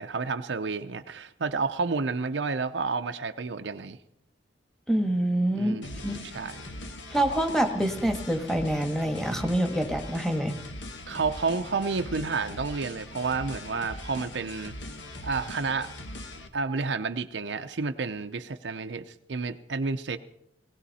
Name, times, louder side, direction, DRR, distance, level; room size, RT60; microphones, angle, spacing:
voice 1, 0.0-4.0 5.5-6.5 11.1-14.7 15.2-15.9 16.5-20.2, right 4 dB, 80° right, 6 dB, 0.7 m, -30 dB
voice 2, 4.9-5.7 6.0-6.2 7.1-10.5, right 1 dB, ahead, 6 dB, 1.7 m, -26 dB
sound 1, 5.8-16.5, left 1 dB, 90° left, 1.6 m, -41 dB
19.0 x 17.0 x 4.2 m, 0.74 s
head